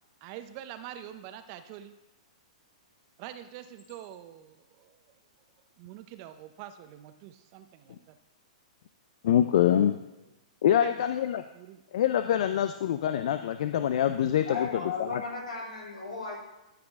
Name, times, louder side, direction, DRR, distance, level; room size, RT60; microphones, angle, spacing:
voice 1, 0.2-1.9 3.2-5.0 5.8-8.2 10.6-11.8, right 11 dB, 40° right, 10 dB, 0.7 m, -45 dB
voice 2, 9.2-10.0 10.6-11.4 11.9-14.7 15.1-15.2, left 10 dB, 65° left, 9 dB, 0.4 m, -25 dB
voice 3, 14.4-16.4, left 4 dB, 90° left, -3 dB, 3.2 m, -35 dB
12.5 x 5.0 x 3.6 m, 0.97 s
hypercardioid pair, 125°, 4 cm